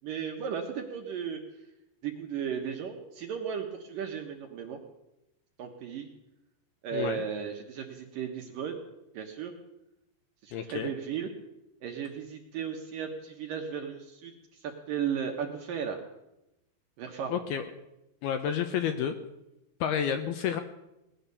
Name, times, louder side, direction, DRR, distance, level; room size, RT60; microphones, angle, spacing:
voice 1, 0.0-1.4 2.0-4.8 5.6-6.1 6.8-8.8 9.1-9.5 10.4-11.3 11.8-16.0 17.0-17.4, right 7 dB, 65° right, 2 dB, 2.3 m, -35 dB
voice 2, 6.9-7.2 10.5-10.9 17.3-17.6 18.2-19.2 19.8-20.6, left 8 dB, 75° left, 7 dB, 2.4 m, -30 dB
19.0 x 10.0 x 6.9 m, 0.91 s
omnidirectional pair, 5.2 m